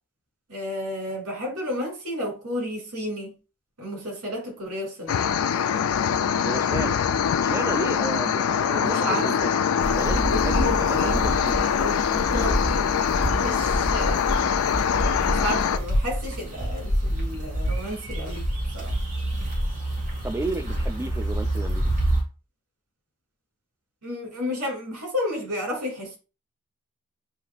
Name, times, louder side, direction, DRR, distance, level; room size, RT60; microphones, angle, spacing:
voice 1, 0.5-3.3 3.8-5.2 8.8-9.3 10.0-11.2 11.6-12.9 13.3-14.3 15.2-18.5 18.7-19.0 24.0-26.2, left 1 dB, 90° right, 2.4 m, -32 dB
sound 1, 5.1-15.8, left 7 dB, 65° left, 0.3 m, -23 dB
voice 2, 6.4-7.0 7.4-9.5 9.8-11.6 20.2-21.8, right 2 dB, 10° right, 0.4 m, -32 dB
sound 2, 9.8-22.2, right 1 dB, 35° right, 1.7 m, -27 dB
7.2 x 2.9 x 2.3 m
head